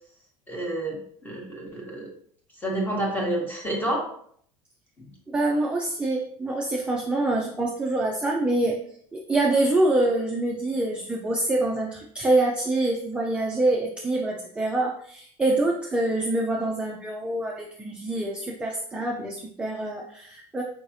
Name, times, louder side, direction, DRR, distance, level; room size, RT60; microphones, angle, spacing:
voice 1, 0.5-1.0 1.2-2.1 2.6-4.1 5.0-5.1, right 1 dB, 15° left, -1 dB, 1.2 m, -29 dB
voice 2, 5.3-8.8 9.1-20.6, right 2 dB, 10° right, -1 dB, 0.4 m, -25 dB
4.7 x 3.1 x 2.6 m, 0.62 s
cardioid pair, 145°, 14 cm